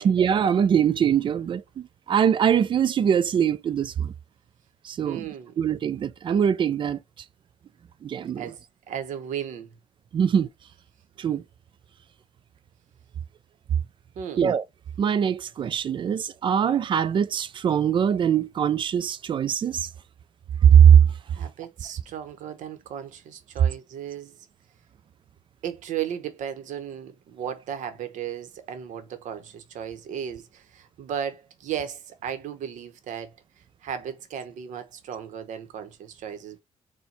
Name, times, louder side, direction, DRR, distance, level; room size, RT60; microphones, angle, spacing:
voice 1, 0.0-4.1 4.8-5.3 5.6-7.0 8.0-8.5 10.1-10.5 11.2-11.4 14.4-14.6 15.0-19.9 20.6-21.0, right 8 dB, 40° right, 0.4 m, -21 dB
voice 2, 5.0-5.6 8.4-9.7 14.2-14.5 21.3-24.4 25.6-33.4 33.8-36.6, right 9 dB, 85° right, 0.9 m, -35 dB
4.4 x 2.2 x 3.9 m
cardioid pair, 135°, 13 cm